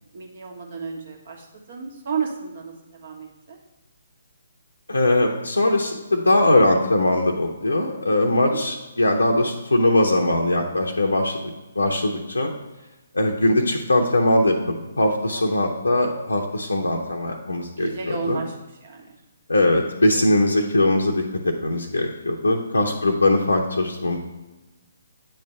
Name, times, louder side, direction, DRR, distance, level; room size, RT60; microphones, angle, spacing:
voice 1, 0.1-3.6 8.2-8.6 15.3-15.5 17.8-18.5 18.8-19.1 22.8-23.0, right 5 dB, 55° right, 0 dB, 1.4 m, -33 dB
voice 2, 4.9-11.5 11.8-12.5 13.1-18.4 19.5-24.2, left 1 dB, 85° left, 0 dB, 0.7 m, -21 dB
8.6 x 3.3 x 5.5 m, 1.1 s
figure-of-eight pair, 135°, 0 cm